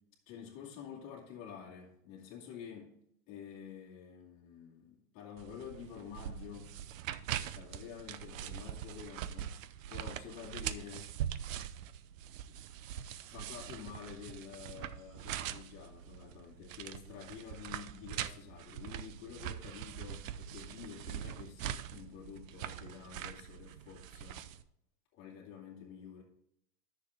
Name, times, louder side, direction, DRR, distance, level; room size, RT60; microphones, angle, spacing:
voice 1, 0.3-3.0 3.3-6.7 7.3-9.6 9.9-11.3 13.3-24.5 25.1-26.2, left 8 dB, 35° left, -5 dB, 2.2 m, -49 dB
sound 1, 5.4-24.6, right 10 dB, 55° right, 0.7 m, -43 dB
10.0 x 6.8 x 3.5 m, 0.76 s
hypercardioid pair, 145°, 46 cm